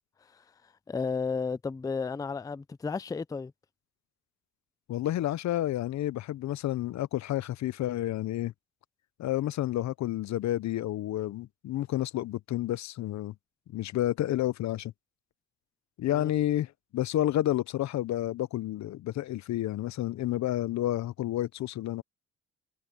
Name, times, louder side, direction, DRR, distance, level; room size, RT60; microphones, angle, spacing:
voice 1, 0.2-3.5 16.0-16.3, left 5 dB, 10° left, 0.4 m, -34 dB
voice 2, 4.9-8.5 9.2-13.3 13.7-14.9 16.0-22.0, left 13 dB, 65° left, 0.6 m, -30 dB
cardioid pair, 90°, 30 cm